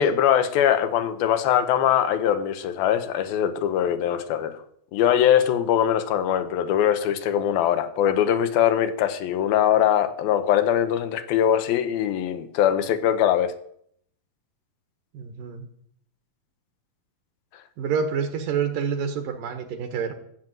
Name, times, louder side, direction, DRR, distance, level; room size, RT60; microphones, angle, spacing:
voice 1, 0.0-4.6 4.9-13.5, left 10 dB, 80° left, 2.8 m, -22 dB
voice 2, 15.1-15.7 17.8-20.1, right 6 dB, 70° right, 2.9 m, -27 dB
14.0 x 7.6 x 9.1 m
omnidirectional pair, 4.3 m